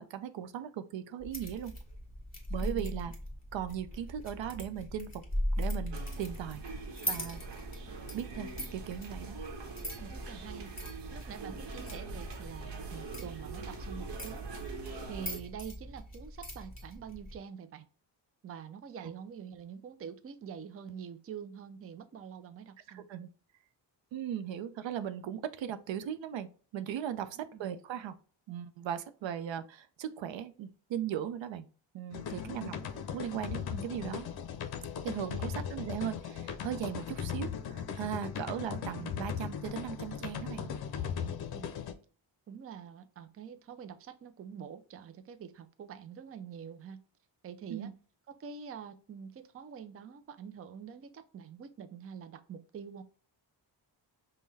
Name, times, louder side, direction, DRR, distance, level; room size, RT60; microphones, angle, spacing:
voice 1, 0.0-1.8 2.5-3.1 3.5-5.1 5.6-6.6 7.1-7.7 8.1-9.4 22.9-23.3 24.1-28.1 28.5-31.7 31.9-34.3 35.0-40.7 47.7-47.9, right 9 dB, 80° right, 11 dB, 0.6 m, -38 dB
sound 1, 1.2-17.4, equal, 20° left, 1.7 m, -40 dB
voice 2, 2.6-2.9 10.0-14.4 15.1-17.9 18.4-23.0 27.4-27.6 32.4-32.8 35.3-35.6 40.9-41.8 42.5-47.0 47.4-47.9 48.3-53.0, right 7 dB, 35° right, 9 dB, 0.4 m, -46 dB
sound 2, 5.9-15.4, right 4 dB, 65° right, 1.0 m, -44 dB
sound 3, 32.1-41.9, left 8 dB, 55° left, 0.6 m, -38 dB
5.3 x 2.2 x 3.2 m, 0.40 s
cardioid pair, 120°, 44 cm